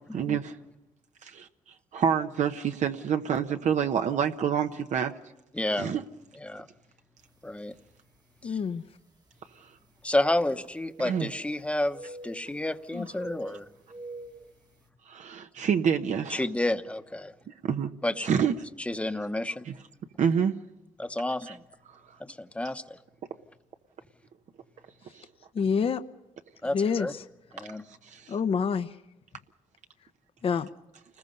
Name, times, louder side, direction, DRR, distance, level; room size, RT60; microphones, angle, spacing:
voice 1, 0.1-0.6 1.2-5.1 5.8-6.0 9.6-9.7 11.0-11.3 15.1-16.5 17.6-17.9 18.2-18.5 19.6-19.7 20.2-20.5 21.5-21.6 21.9-22.0 25.1-25.3 27.9-28.4, right 7 dB, 65° right, 6 dB, 1.0 m, -28 dB
voice 2, 5.5-5.9 6.4-6.7 7.4-7.7 8.4-8.6 10.0-13.7 16.3-17.3 18.0-18.3 18.8-19.7 21.0-21.6 22.3-23.0 26.6-27.1 27.5-27.8, left 1 dB, 10° left, 9 dB, 1.0 m, -30 dB
sound 1, 7.5-7.6 8.4-8.5 10.4-11.6 11.9-12.7 13.1-14.5, right 2 dB, 30° right, 1.3 m, -45 dB
voice 3, 8.4-8.8 12.9-13.1 25.5-26.0 26.7-27.2 28.3-28.9 30.4-30.7, left 6 dB, 45° left, 9 dB, 0.8 m, -27 dB
29.5 x 20.5 x 5.4 m, 1.0 s
cardioid pair, 125°, 13 cm